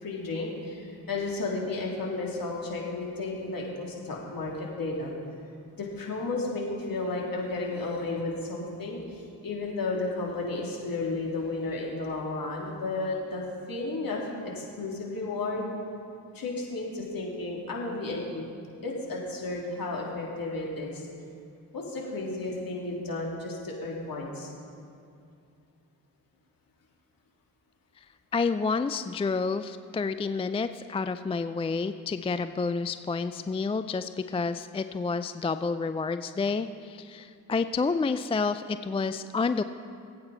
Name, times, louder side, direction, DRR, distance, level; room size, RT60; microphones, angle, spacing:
voice 1, 0.0-5.1 5.8-13.4 13.7-15.7 16.3-18.5 18.8-21.1 21.7-24.5, left 2 dB, 50° left, -2 dB, 3.0 m, -33 dB
voice 2, 28.3-39.6, left 4 dB, 15° left, 11 dB, 0.3 m, -29 dB
19.0 x 8.7 x 4.2 m, 2.5 s
hypercardioid pair, 45°, 43 cm